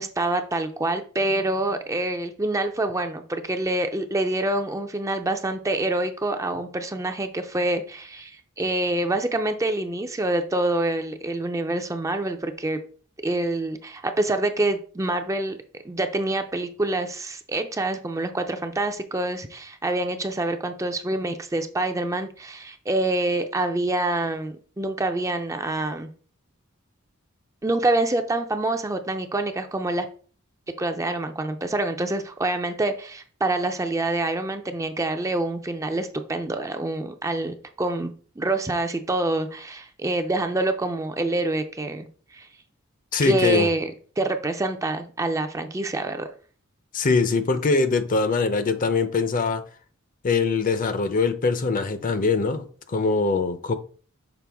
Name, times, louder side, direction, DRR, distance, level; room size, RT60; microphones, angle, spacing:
voice 1, 0.0-12.8 13.2-15.6 15.8-26.1 27.6-30.1 30.8-38.1 38.4-42.1 42.3-42.5 43.2-43.9 44.2-46.3, right 2 dB, 15° right, 6 dB, 0.4 m, -26 dB
voice 2, 43.1-43.7 46.9-49.6 50.2-53.8, left 4 dB, 40° left, 11 dB, 0.6 m, -23 dB
6.0 x 4.5 x 3.4 m, 0.42 s
head